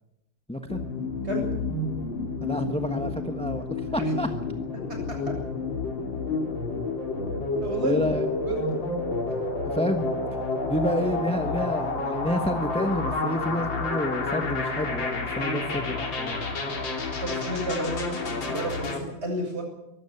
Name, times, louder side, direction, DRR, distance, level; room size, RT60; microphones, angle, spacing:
voice 1, 0.5-0.8 2.4-4.3 7.8-8.3 9.6-10.1 10.7-16.4, equal, 5° left, 6 dB, 0.8 m, -29 dB
sound 1, 0.7-19.0, left 3 dB, 65° left, 3.7 m, -30 dB
voice 2, 4.7-5.4 7.6-8.1 8.4-8.8 17.2-19.6, right 1 dB, 30° right, 1 dB, 7.9 m, -31 dB
23.5 x 13.5 x 9.7 m, 0.88 s
omnidirectional pair, 2.3 m